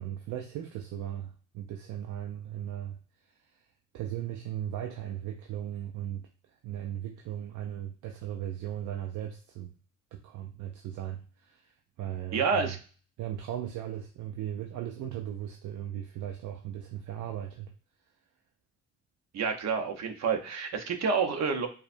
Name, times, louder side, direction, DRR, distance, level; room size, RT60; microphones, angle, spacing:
voice 1, 0.0-3.0 3.9-9.7 10.1-12.8 13.2-17.7, right 11 dB, 75° right, 2 dB, 0.5 m, -37 dB
voice 2, 12.3-12.8 19.3-21.7, right 5 dB, 60° right, 4 dB, 0.9 m, -28 dB
4.7 x 2.2 x 2.6 m, 0.38 s
cardioid pair, 90°, 30 cm